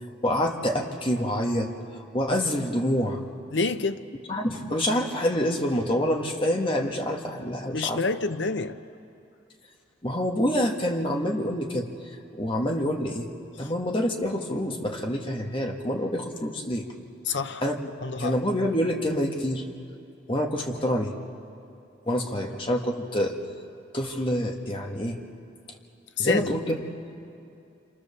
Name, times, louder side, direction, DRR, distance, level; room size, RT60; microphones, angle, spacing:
voice 1, 0.2-3.2 4.3-8.0 10.0-13.3 13.6-16.9 17.6-17.8 18.2-19.6 20.3-21.2 22.1-23.4 23.9-25.2 26.2-26.8, equal, 25° left, 2 dB, 1.7 m, -27 dB
voice 2, 3.5-4.0 7.7-8.8 13.6-13.7 17.3-17.6 18.0-18.4 26.2-26.5, left 4 dB, 75° left, 10 dB, 0.9 m, -27 dB
28.0 x 27.5 x 7.0 m, 2.6 s
head